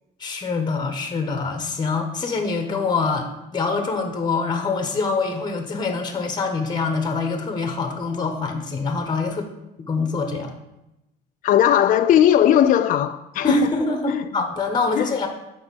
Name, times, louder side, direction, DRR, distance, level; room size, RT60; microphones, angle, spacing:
voice 1, 0.2-3.3 3.5-9.4 9.8-10.5 13.4-15.3, left 3 dB, 25° left, 1.1 m, -25 dB
voice 2, 11.4-13.7 14.1-14.2 14.9-15.1, left 10 dB, 50° left, 0.4 m, -17 dB
7.2 x 5.3 x 5.3 m
cardioid pair, 110°, 17 cm